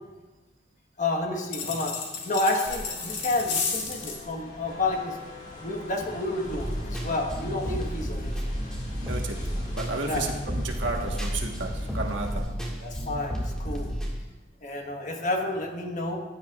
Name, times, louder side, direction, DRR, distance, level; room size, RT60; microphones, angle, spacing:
voice 1, 1.0-1.9 2.2-5.2 5.5-8.5 10.0-10.3 12.8-13.9 14.6-16.2, left 2 dB, 40° left, 2 dB, 1.3 m, -30 dB
sound 1, 1.5-4.2, left 5 dB, 75° left, 1.8 m, -32 dB
sound 2, 2.7-12.4, left 1 dB, 60° left, 3.0 m, -44 dB
sound 3, 6.4-14.1, equal, 5° left, 2.0 m, -32 dB
voice 2, 9.7-11.7 11.9-12.3, right 3 dB, 75° right, 2 dB, 1.4 m, -32 dB
15.5 x 9.8 x 2.4 m, 1.2 s
head